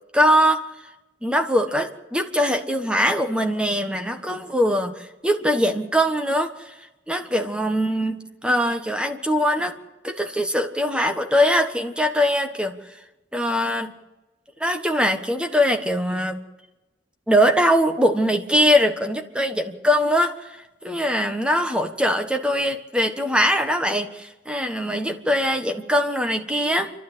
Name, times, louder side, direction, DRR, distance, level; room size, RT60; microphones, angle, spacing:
voice 1, 0.1-0.6 1.2-6.7 7.1-9.8 10.0-12.8 13.3-13.9 14.6-16.4 17.3-20.3 20.8-26.9, equal, 5° right, 5 dB, 1.4 m, -22 dB
28.5 x 12.5 x 8.3 m, 1.1 s
head